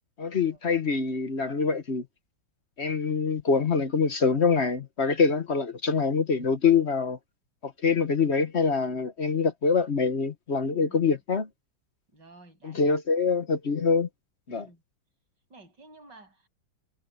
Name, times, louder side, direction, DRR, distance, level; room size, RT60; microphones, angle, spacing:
voice 1, 0.2-2.0 2.8-7.2 7.6-11.5 12.6-14.1 14.5-14.7, left 5 dB, 40° left, 1.2 m, -25 dB
voice 2, 12.1-13.3 14.5-14.8 15.5-16.5, right 2 dB, 65° right, 8.9 m, -53 dB
omnidirectional pair, 2.1 m